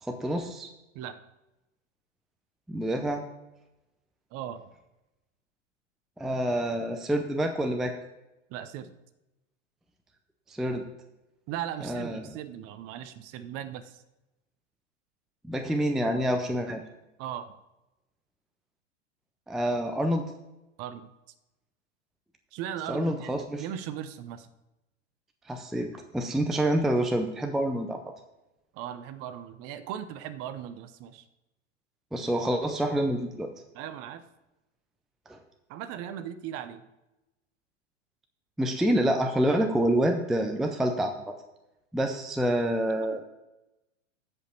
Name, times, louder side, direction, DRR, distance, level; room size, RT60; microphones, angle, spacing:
voice 1, 0.0-0.7 2.7-3.2 6.2-7.9 10.5-10.9 11.8-12.3 15.4-16.8 19.5-20.2 22.9-23.6 25.5-28.1 32.1-33.5 35.3-35.4 38.6-41.1 41.9-43.2, right 1 dB, ahead, 5 dB, 0.5 m, -27 dB
voice 2, 4.3-4.7 8.5-8.9 11.5-14.0 17.2-17.5 20.8-21.1 22.5-24.5 28.7-31.2 33.7-34.2 35.7-36.9 43.0-43.2, right 10 dB, 40° right, 12 dB, 0.8 m, -38 dB
14.0 x 5.3 x 4.4 m, 0.97 s
hypercardioid pair, 120°, 38 cm